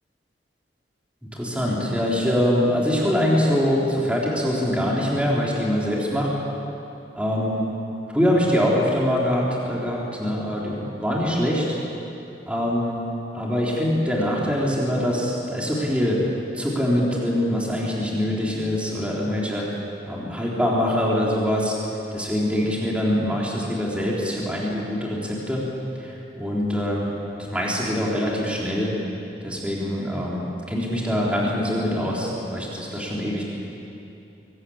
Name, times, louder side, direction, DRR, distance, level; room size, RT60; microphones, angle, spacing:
voice 1, 1.2-6.3 7.1-7.7 8.1-11.7 12.5-13.1 13.3-16.2 16.5-19.7 20.1-21.8 22.1-25.6 26.0-27.1 27.5-28.9 29.4-33.4, equal, 5° right, -5 dB, 3.7 m, -24 dB
23.5 x 19.5 x 8.7 m, 2.9 s
head